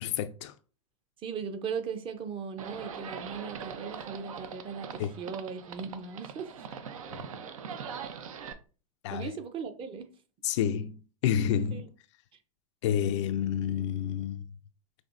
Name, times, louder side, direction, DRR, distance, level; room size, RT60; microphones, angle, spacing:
voice 1, 0.0-0.5 5.0-5.1 7.1-7.3 9.0-9.3 10.4-11.9 12.8-14.5, left 9 dB, 55° left, 0.4 m, -29 dB
voice 2, 1.2-6.5 9.1-10.1 11.7-11.8, right 6 dB, 30° right, 0.7 m, -38 dB
Livestock farm animals working animals, 2.6-8.5, right 6 dB, 70° right, 0.6 m, -41 dB
5.8 x 2.6 x 2.4 m
hypercardioid pair, 95°, 18 cm